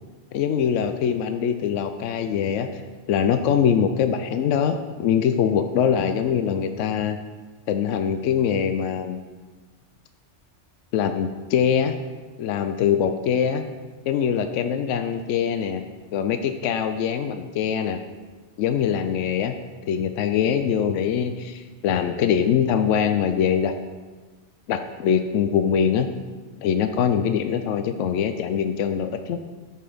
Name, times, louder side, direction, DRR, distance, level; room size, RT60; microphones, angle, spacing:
voice 1, 0.3-2.8 3.1-7.2 7.7-9.2 10.9-11.9 12.4-13.6 14.1-15.8 16.1-18.0 18.6-19.5 19.8-23.7 24.7-26.1 26.6-29.4, left 8 dB, 85° left, 8 dB, 0.9 m, -23 dB
8.9 x 6.9 x 5.0 m, 1.3 s
omnidirectional pair, 1.2 m